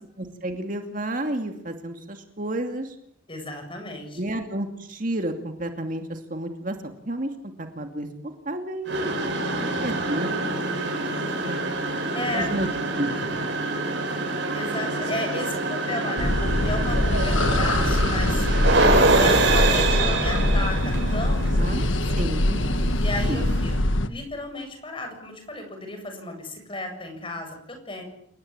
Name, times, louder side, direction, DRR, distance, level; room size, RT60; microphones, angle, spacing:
voice 1, 0.2-3.0 4.2-7.3 7.6-8.1 8.4-9.1 9.6-10.3 10.8-11.7 12.3-12.7 13.0-13.4 21.5-21.9 22.2-22.8 23.2-23.6, right 1 dB, 40° right, 5 dB, 2.5 m, -31 dB
voice 2, 3.3-4.2 12.1-12.6 14.5-18.5 19.1-21.9 23.0-23.7 24.1-28.0, left 2 dB, 25° left, 5 dB, 7.7 m, -34 dB
sound 1, 8.8-23.8, right 2 dB, 55° right, 7.8 m, -26 dB
sound 2, 16.2-24.1, left 1 dB, 70° left, 1.7 m, -23 dB
29.0 x 19.0 x 8.9 m, 0.71 s
head